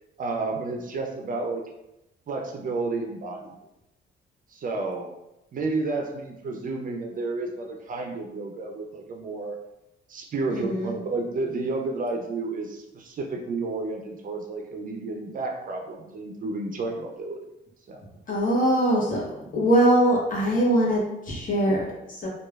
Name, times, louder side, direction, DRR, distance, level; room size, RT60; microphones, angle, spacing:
voice 1, 0.2-1.6 2.3-3.6 4.5-5.1 5.5-9.6 10.1-17.4 17.9-18.0, right 3 dB, 45° right, 2 dB, 0.4 m, -31 dB
voice 2, 10.5-10.9 18.3-22.3, right 1 dB, 40° left, -3 dB, 0.9 m, -22 dB
3.0 x 2.3 x 2.3 m, 0.91 s
cardioid pair, 90°, 20 cm